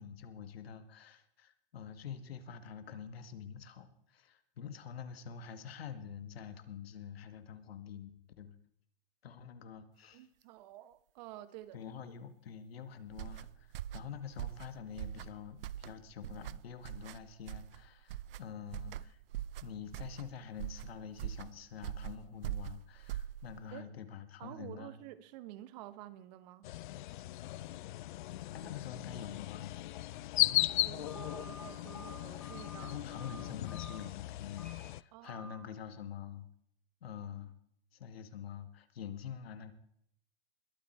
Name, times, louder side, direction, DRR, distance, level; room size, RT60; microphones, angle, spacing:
voice 1, 0.0-8.6 9.2-10.2 11.7-19.2 19.6-25.0 28.5-29.8 32.8-36.5 37.0-37.5 37.9-39.7, left 8 dB, 80° left, 2.0 m, -46 dB
voice 2, 10.1-11.8 23.7-24.0 24.4-26.7 30.8-33.0 35.1-35.4, right 14 dB, 45° right, 1.0 m, -50 dB
sound 1, 13.1-23.7, right 12 dB, 65° right, 0.6 m, -43 dB
sound 2, 26.6-35.0, left 16 dB, 55° left, 0.5 m, -37 dB
Telephone, 31.0-34.0 34.5-34.8 35.2-35.6, right 1 dB, 5° left, 4.2 m, -52 dB
21.5 x 8.7 x 4.8 m
hypercardioid pair, 145°, 30 cm